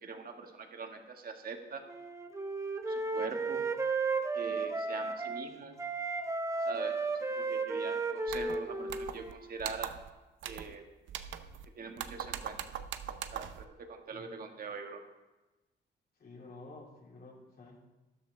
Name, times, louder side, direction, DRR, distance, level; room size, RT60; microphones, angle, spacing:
voice 1, 0.0-1.8 2.9-3.7 4.3-5.8 6.6-10.0 10.4-10.8 11.7-12.6 13.3-15.0, right 4 dB, 50° right, 4 dB, 1.6 m, -43 dB
Wind instrument woodwind instrument, 1.9-5.4 5.8-9.5, right 3 dB, 15° right, 0.9 m, -34 dB
sound 1, 8.3-8.6 8.9-9.3 9.6-10.1 10.4-10.7 11.1-11.7 12.0-13.6, right 9 dB, 75° right, 0.7 m, -41 dB
voice 2, 16.2-17.8, left 2 dB, 50° left, -1 dB, 2.9 m, -51 dB
12.5 x 11.5 x 3.3 m, 1.1 s
cardioid pair, 90°, 20 cm